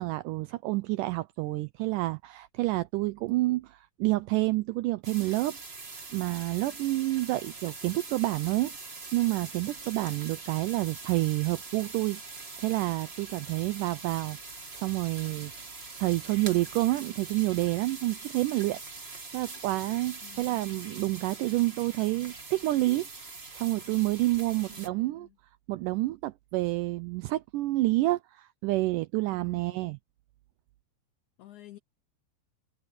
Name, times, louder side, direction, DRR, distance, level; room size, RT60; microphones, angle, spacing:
voice 1, 0.0-5.6 6.1-18.8 19.3-23.1 23.5-25.3 25.7-30.0, right 19 dB, 85° right, 1.9 m, -29 dB
sound 1, 5.0-24.9, right 3 dB, 35° right, 0.9 m, -43 dB
voice 2, 20.2-21.1 24.7-25.4 29.2-29.9 31.4-31.8, left 15 dB, 75° left, 1.8 m, -53 dB
omnidirectional pair, 4.2 m